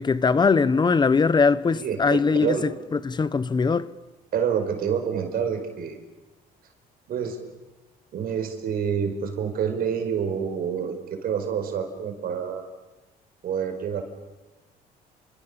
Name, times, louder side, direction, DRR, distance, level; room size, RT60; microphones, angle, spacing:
voice 1, 0.0-3.9, left 4 dB, 25° left, 1.0 m, -21 dB
voice 2, 1.7-2.6 4.3-6.0 7.1-7.4 8.1-12.7 13.4-14.0, right 7 dB, 60° right, 5.2 m, -27 dB
29.0 x 26.0 x 7.0 m
cardioid pair, 110°, 17 cm